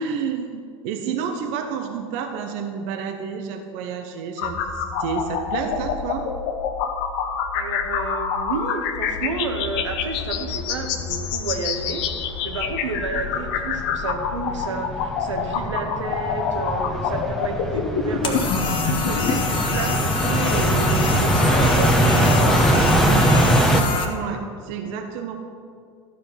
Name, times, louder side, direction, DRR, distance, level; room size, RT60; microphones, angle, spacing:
voice 1, 0.0-6.3 24.0-25.4, right 6 dB, 50° right, 4 dB, 0.9 m, -30 dB
sound 1, 4.4-19.4, left 7 dB, 55° left, 0.9 m, -27 dB
voice 2, 7.5-12.0 12.4-18.5 18.8-23.1, right 3 dB, 75° right, 4 dB, 1.0 m, -30 dB
sound 2, 9.8-9.9 10.5-10.6 11.1-11.8 12.2-23.8, right 1 dB, 5° left, 1.0 m, -22 dB
sound 3, 18.2-24.0, left 5 dB, 35° left, 1.3 m, -26 dB
13.0 x 5.1 x 5.7 m, 2.2 s
figure-of-eight pair, 80°, 15 cm